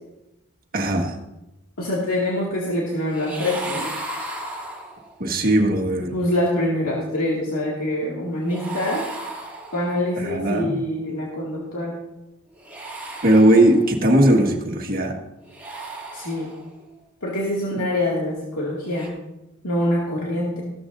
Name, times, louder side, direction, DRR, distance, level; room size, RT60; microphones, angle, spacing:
voice 1, 0.7-1.1 5.2-6.1 10.2-10.8 13.2-15.1, right 1 dB, 45° right, 2 dB, 1.7 m, -18 dB
voice 2, 1.8-3.9 6.1-9.0 9.7-12.0 16.1-16.5 17.2-19.1 19.6-20.6, left 1 dB, 85° left, -4 dB, 2.3 m, -25 dB
sound 1, 3.1-5.3 8.5-10.1 12.5-14.1 15.4-16.8 18.8-19.1, right 2 dB, 10° right, 2.7 m, -35 dB
15.5 x 13.0 x 2.6 m, 0.96 s
head